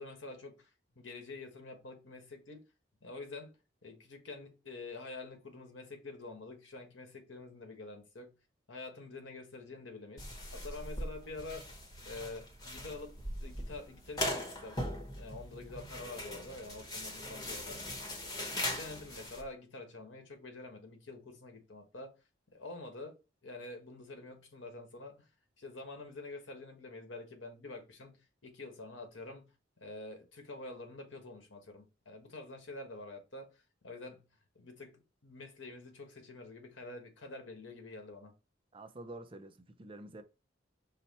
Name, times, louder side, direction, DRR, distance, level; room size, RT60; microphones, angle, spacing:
voice 1, 0.0-2.6 3.0-8.3 8.7-14.9 15.2-18.0 18.2-22.1 22.5-23.2 23.4-25.1 25.6-29.4 29.8-34.2 34.5-38.3, left 2 dB, 85° left, 1.3 m, -47 dB
sound 1, 10.2-19.4, left 1 dB, 20° left, 1.0 m, -40 dB
voice 2, 38.7-40.2, right 2 dB, 30° right, 0.5 m, -48 dB
5.6 x 2.2 x 4.1 m
head